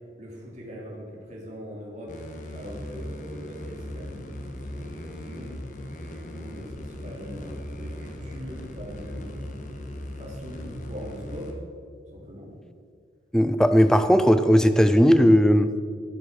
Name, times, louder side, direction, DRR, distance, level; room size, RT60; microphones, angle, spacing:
voice 1, 0.2-2.2 2.5-4.4 4.7-5.5 6.0-9.5 10.2-11.5 12.1-12.5, equal, 40° right, -3 dB, 3.1 m, -41 dB
sound 1, 2.1-11.5, left 1 dB, 45° left, 1.5 m, -38 dB
voice 2, 13.3-15.8, equal, 5° left, 10 dB, 0.5 m, -17 dB
13.0 x 7.8 x 6.4 m, 2.2 s
head